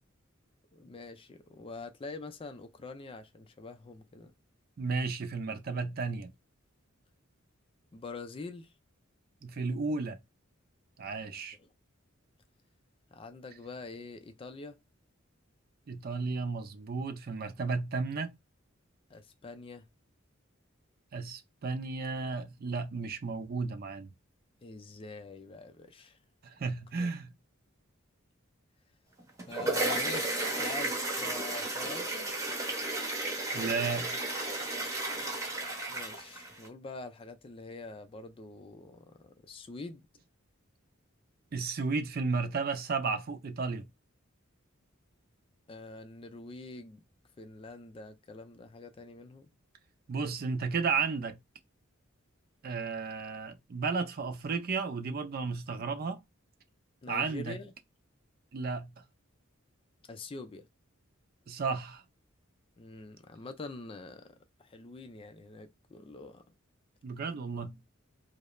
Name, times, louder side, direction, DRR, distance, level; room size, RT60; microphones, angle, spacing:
voice 1, 0.7-4.3 7.9-8.7 11.6-11.7 13.1-14.8 19.1-19.9 24.6-26.2 26.9-27.1 29.5-32.3 35.9-40.0 45.7-47.0 47.4-49.5 57.0-57.7 60.1-60.7 62.8-64.3 64.6-66.4, left 3 dB, 25° left, 0.4 m, -45 dB
voice 2, 4.8-6.3 9.4-10.2 11.0-11.6 15.9-18.3 21.1-24.1 26.4-27.3 33.5-34.1 41.5-43.9 50.1-51.4 52.6-56.2 57.1-57.6 58.5-58.9 61.5-62.0 67.0-67.8, right 4 dB, 45° right, 0.4 m, -33 dB
sound 1, 29.2-36.7, right 2 dB, 15° right, 0.9 m, -33 dB
3.0 x 2.0 x 2.2 m
head